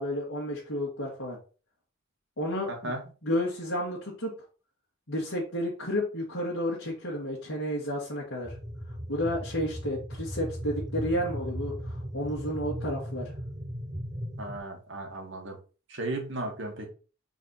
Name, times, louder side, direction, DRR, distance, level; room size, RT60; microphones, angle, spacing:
voice 1, 0.0-1.4 2.4-2.9 3.2-4.3 5.1-8.5 9.1-13.3, equal, 70° left, -6 dB, 1.9 m, -31 dB
voice 2, 2.7-3.0 14.4-15.6 15.9-16.9, right 2 dB, 65° right, 2 dB, 2.0 m, -35 dB
sound 1, 8.4-14.6, equal, 20° right, 1.2 m, -37 dB
4.5 x 4.3 x 5.6 m, 0.36 s
head